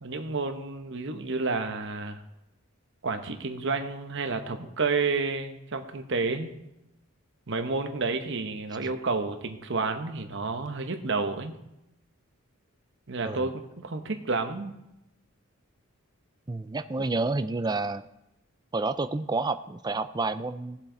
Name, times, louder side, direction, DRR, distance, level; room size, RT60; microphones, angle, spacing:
voice 1, 0.0-2.2 3.0-6.5 7.5-11.5 13.1-14.8 17.0-17.1, right 3 dB, 55° right, 7 dB, 1.0 m, -30 dB
voice 2, 16.5-18.0 18.7-20.8, right 3 dB, 20° right, 10 dB, 0.4 m, -29 dB
17.5 x 7.3 x 3.9 m, 0.88 s
head